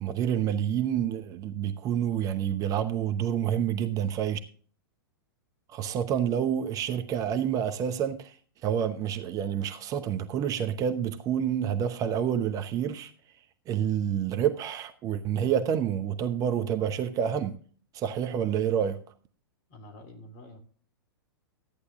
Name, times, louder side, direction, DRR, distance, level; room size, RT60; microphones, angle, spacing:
voice 1, 0.0-4.4 5.7-8.4 8.6-13.1 13.7-17.6 17.9-19.0, right 9 dB, 30° right, 0.9 m, -28 dB
voice 2, 19.7-20.6, left 1 dB, 40° left, 3.4 m, -47 dB
13.5 x 9.6 x 3.7 m
figure-of-eight pair, 105°, 12 cm